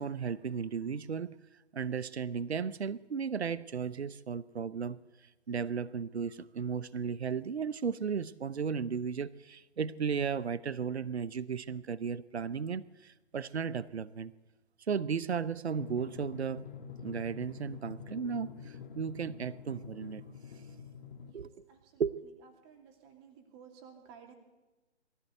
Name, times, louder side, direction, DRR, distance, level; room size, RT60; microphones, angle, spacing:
voice 1, 0.0-1.4 1.7-5.0 5.5-14.3 14.9-16.7 17.0-20.2 21.3-21.5 22.0-22.1, right 6 dB, 65° right, 18 dB, 0.9 m, -35 dB
Drum, 15.8-21.3, left 7 dB, 45° left, 1.6 m, -47 dB
voice 2, 21.3-22.0 22.6-24.3, right 7 dB, 25° right, 4 dB, 2.6 m, -55 dB
21.5 x 15.5 x 8.0 m, 1.1 s
figure-of-eight pair, 135°, 35 cm